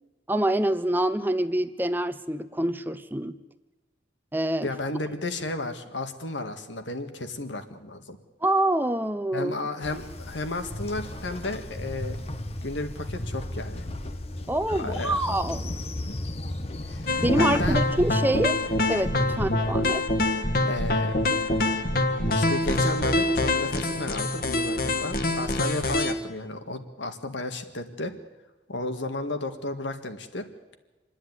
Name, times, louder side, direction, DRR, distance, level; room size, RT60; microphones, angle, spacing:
voice 1, 0.3-3.4 4.3-4.7 8.4-9.5 14.5-15.7 17.2-18.6 18.9-20.0, right 1 dB, 10° right, 11 dB, 0.7 m, -26 dB
voice 2, 4.6-8.2 9.3-12.2 12.6-13.8 14.8-15.2 16.0-16.2 16.9-17.8 19.3-19.5 20.6-21.2 22.3-28.1 28.7-30.5, left 2 dB, 85° left, 7 dB, 1.9 m, -33 dB
Train, 9.8-19.8, left 1 dB, 35° left, 1.0 m, -35 dB
sound 1, 17.1-26.1, left 2 dB, 50° left, 1.5 m, -25 dB
27.5 x 10.0 x 9.6 m, 1.2 s
head